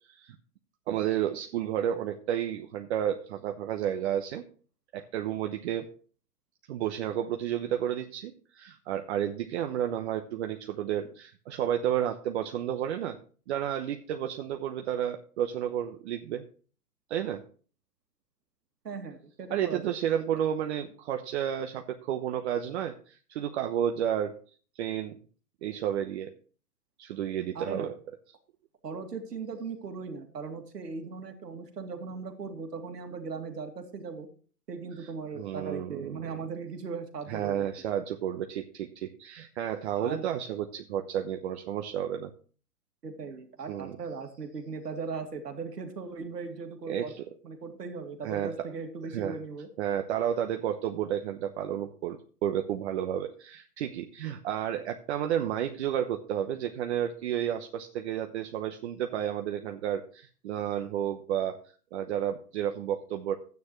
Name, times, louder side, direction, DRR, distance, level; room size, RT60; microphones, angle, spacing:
voice 1, 0.9-4.5 4.9-5.9 6.7-13.2 13.5-16.4 17.1-17.4 19.5-24.3 24.7-25.2 25.6-26.3 27.0-27.9 35.3-36.3 37.3-42.3 43.7-43.9 46.9-47.2 48.2-48.7 49.1-49.4 49.8-61.6 61.9-63.3, right 10 dB, 45° right, 5 dB, 1.0 m, -31 dB
voice 2, 18.8-20.0 27.5-27.9 28.8-34.3 34.7-37.7 39.9-40.3 43.0-47.1 47.4-49.7, right 5 dB, 85° right, 5 dB, 2.4 m, -38 dB
13.0 x 9.4 x 3.2 m, 0.42 s
hypercardioid pair, 130°, 46 cm